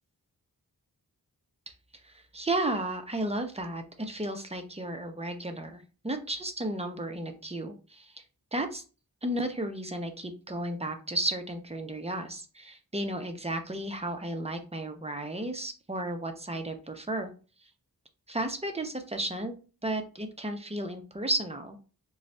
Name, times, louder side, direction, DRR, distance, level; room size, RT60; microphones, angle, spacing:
voice 1, 2.0-8.2 8.5-8.8 9.2-17.3 18.3-19.5 19.8-21.8, right 1 dB, 15° right, 5 dB, 0.6 m, -33 dB
3.9 x 2.3 x 3.2 m, 0.35 s
wide cardioid pair, 75°, 38 cm